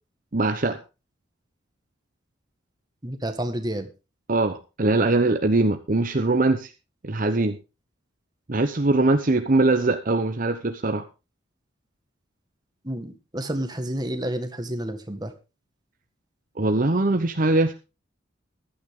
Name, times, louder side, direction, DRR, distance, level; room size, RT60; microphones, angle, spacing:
voice 1, 0.3-0.8 4.3-6.7 7.0-7.6 8.5-11.0 16.6-17.7, right 2 dB, 45° right, 7 dB, 1.0 m, -22 dB
voice 2, 3.0-3.9 12.8-15.3, right 1 dB, 20° right, 7 dB, 1.8 m, -30 dB
15.0 x 11.5 x 3.8 m, 0.29 s
head